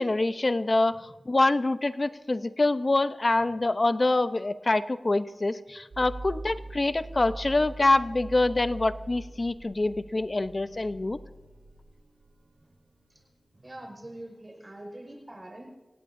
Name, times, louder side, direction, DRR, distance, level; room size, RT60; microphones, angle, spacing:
voice 1, 0.0-11.2, left 2 dB, 40° left, 12 dB, 0.8 m, -25 dB
sound 1, 5.9-13.8, right 2 dB, 85° right, 2.7 m, -44 dB
voice 2, 13.5-15.7, right 1 dB, 30° right, 1 dB, 5.2 m, -44 dB
26.0 x 17.5 x 2.7 m, 1.2 s
wide cardioid pair, 70°, 0 cm